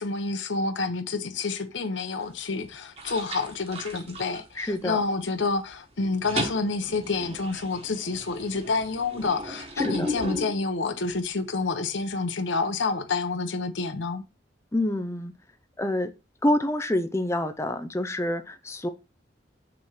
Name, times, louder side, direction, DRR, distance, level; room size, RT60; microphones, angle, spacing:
voice 1, 0.0-14.2, left 3 dB, 85° left, 0.8 m, -28 dB
sound 1, 2.2-2.6 3.0-5.1 5.4-5.7 6.0-11.3, equal, 35° right, 1.4 m, -35 dB
voice 2, 4.6-5.0 9.8-10.1 14.7-15.3 15.8-16.1 16.4-18.9, left 1 dB, 15° left, 0.5 m, -27 dB
6.0 x 3.2 x 5.6 m
head